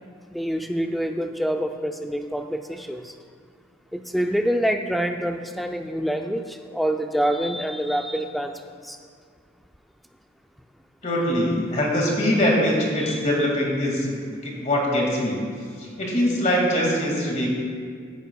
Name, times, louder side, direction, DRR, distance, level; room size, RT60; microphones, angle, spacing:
voice 1, 0.3-3.1 3.9-8.5 8.8-9.0 13.0-13.2, equal, ahead, 4 dB, 0.4 m, -26 dB
voice 2, 11.0-15.4 15.8-17.5, equal, 40° left, -2 dB, 2.0 m, -23 dB
16.0 x 10.5 x 2.3 m, 2.1 s
head